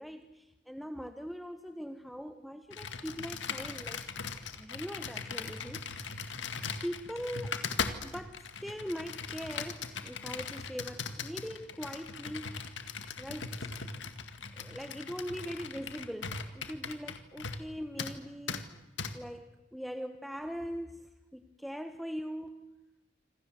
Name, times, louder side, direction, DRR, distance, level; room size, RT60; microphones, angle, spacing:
voice 1, 0.0-4.0 4.5-5.9 6.2-6.5 6.8-7.6 8.0-12.6 13.2-13.7 14.6-18.7 19.1-22.7, equal, ahead, 6 dB, 1.2 m, -41 dB
Computer keyboard, 2.7-17.7 18.0-18.2 18.5-18.6 19.0-19.1, left 5 dB, 75° left, 2.0 m, -39 dB
27.5 x 26.5 x 7.8 m, 1.0 s
head